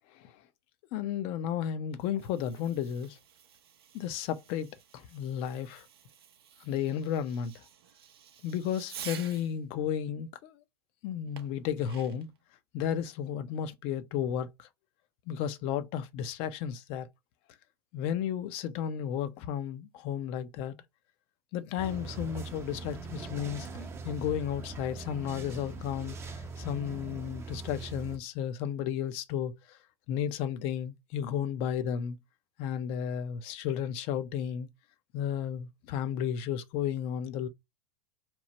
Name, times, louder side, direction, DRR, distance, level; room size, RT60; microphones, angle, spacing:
voice 1, 0.9-3.2 3.9-4.7 4.9-5.9 6.6-7.6 8.4-10.5 11.0-12.3 12.7-14.7 15.3-17.1 17.9-20.8 21.5-29.8 30.1-32.2 32.6-34.7 35.1-37.5, left 9 dB, 50° left, 0.5 m, -33 dB
Fireworks, 1.9-9.6 11.4-12.4, right 9 dB, 75° right, 0.5 m, -50 dB
sound 1, 21.8-28.2, right 3 dB, 20° right, 0.5 m, -41 dB
3.0 x 2.1 x 2.8 m
hypercardioid pair, 95°, 13 cm